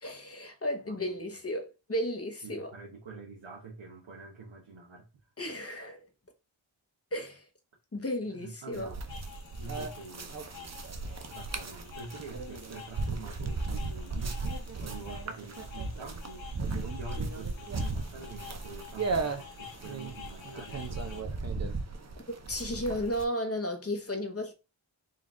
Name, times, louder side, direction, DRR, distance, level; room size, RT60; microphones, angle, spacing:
voice 1, 0.0-2.7 5.4-6.0 7.1-7.5 7.9-8.9 22.5-24.5, equal, 30° left, 0.8 m, -34 dB
voice 2, 0.9-1.3 2.4-5.1 8.3-9.1 9.6-10.4 11.3-14.5 14.8-21.4, right 3 dB, 65° right, 1.0 m, -46 dB
sound 1, 8.7-23.2, right 3 dB, 35° right, 0.6 m, -36 dB
sound 2, 9.1-21.2, left 8 dB, 65° left, 1.0 m, -50 dB
3.9 x 2.4 x 3.7 m
wide cardioid pair, 90°, 48 cm